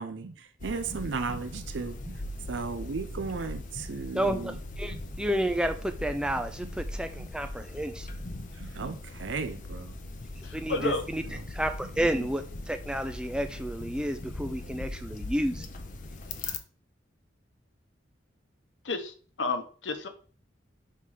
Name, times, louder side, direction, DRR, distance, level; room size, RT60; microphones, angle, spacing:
voice 1, 0.0-2.2 2.5-4.5 4.9-5.0 8.6-9.9 10.8-10.9 12.0-12.3, right 4 dB, 85° right, 0.6 m, -35 dB
sound 1, 0.6-16.6, left 2 dB, 45° left, 0.7 m, -40 dB
voice 2, 4.1-8.1 10.4-11.2 11.5-15.7, right 1 dB, 5° right, 0.4 m, -31 dB
voice 3, 10.4-11.0 18.8-20.1, left 3 dB, 80° left, 0.9 m, -31 dB
5.5 x 3.8 x 4.9 m
head